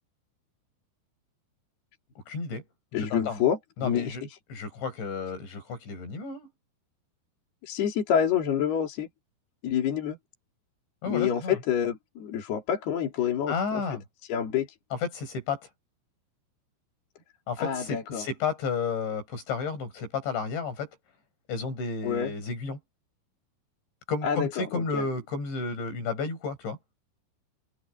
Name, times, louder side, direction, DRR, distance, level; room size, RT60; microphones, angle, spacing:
voice 1, 2.3-2.6 2.9-3.4 3.8-4.2 4.5-6.5 11.0-11.6 13.5-14.0 15.0-15.7 17.5-20.9 21.5-22.8 24.1-26.8, left 4 dB, 80° left, 9.6 m, -32 dB
voice 2, 2.9-4.2 7.6-9.1 9.6-10.2 11.1-13.5 14.3-14.7 17.6-18.3 22.0-22.3 24.2-25.0, left 8 dB, 65° left, 5.0 m, -27 dB
omnidirectional pair, 5.2 m